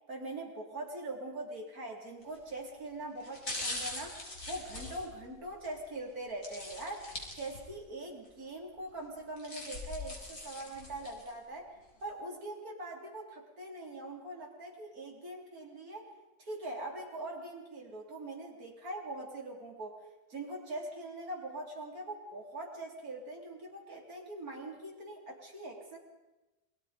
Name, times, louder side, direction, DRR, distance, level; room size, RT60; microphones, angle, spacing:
voice 1, 0.1-11.7 12.0-16.1 16.4-20.0 20.3-26.0, right 2 dB, 65° right, -1 dB, 4.3 m, -42 dB
sound 1, 2.2-2.5 3.2-5.7 6.4-7.9 8.2-8.3 9.1-11.3 11.8-11.9, left 2 dB, 70° left, 5.2 m, -42 dB
28.5 x 22.0 x 5.2 m, 1.1 s
omnidirectional pair, 1.7 m